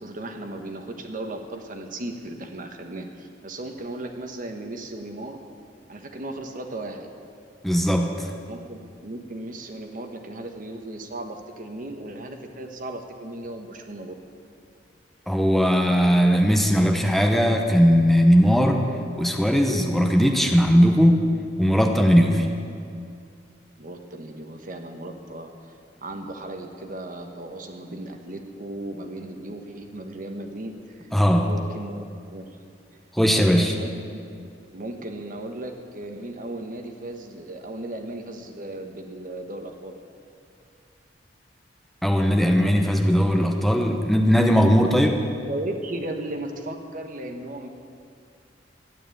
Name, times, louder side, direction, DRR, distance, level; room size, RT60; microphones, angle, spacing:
voice 1, 0.0-5.4 5.9-7.1 8.5-14.2 23.8-25.5 26.0-31.1 31.4-32.6 33.3-34.2 34.7-40.0 45.5-47.7, right 1 dB, 50° right, 5 dB, 1.2 m, -36 dB
voice 2, 7.6-8.3 15.3-18.9 19.2-21.3 21.6-22.5 31.1-31.5 33.1-33.7 42.0-45.2, equal, ahead, 3 dB, 0.8 m, -19 dB
12.5 x 9.2 x 9.1 m, 2.4 s
head